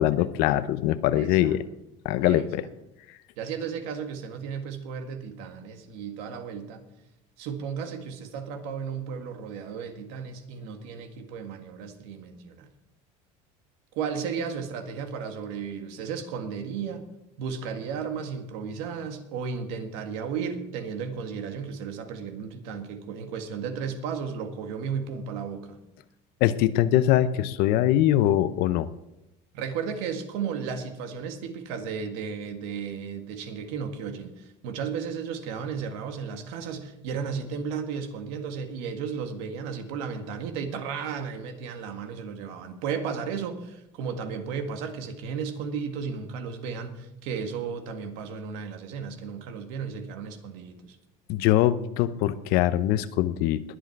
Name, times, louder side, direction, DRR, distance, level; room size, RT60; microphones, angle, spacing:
voice 1, 0.0-1.6 2.0-2.7 26.4-28.9 51.3-53.6, left 13 dB, 70° left, 13 dB, 0.8 m, -22 dB
voice 2, 1.2-1.5 2.2-2.5 3.4-6.8 7.4-12.7 13.9-17.1 17.4-25.8 29.5-51.0, right 6 dB, 80° right, 6 dB, 1.9 m, -34 dB
21.5 x 8.2 x 4.7 m, 0.88 s
cardioid pair, 130°, 16 cm